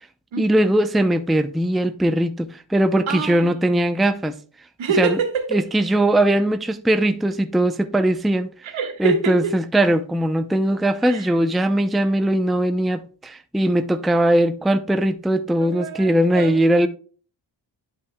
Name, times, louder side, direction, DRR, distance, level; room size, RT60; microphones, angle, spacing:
voice 1, 0.4-4.4 5.0-5.2 5.5-8.5 9.0-16.9, right 1 dB, ahead, 0.5 m, -20 dB
voice 2, 3.1-3.5 4.8-5.6 8.6-9.5 11.0-11.3 15.6-16.6, right 5 dB, 85° right, 1.6 m, -25 dB
11.0 x 5.7 x 2.2 m
cardioid pair, 85°, 46 cm